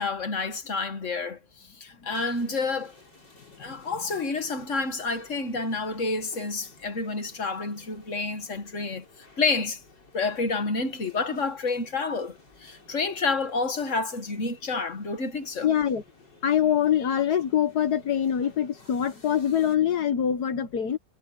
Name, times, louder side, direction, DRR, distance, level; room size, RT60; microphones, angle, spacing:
voice 1, 0.0-3.0 3.6-9.1 9.4-9.8 10.1-15.7, left 3 dB, 45° left, 2.0 m, -29 dB
sound 1, 2.1-19.8, left 3 dB, 80° left, 6.0 m, -55 dB
voice 2, 15.6-16.0 16.4-21.0, left 9 dB, 65° left, 1.7 m, -24 dB
omnidirectional pair, 1.9 m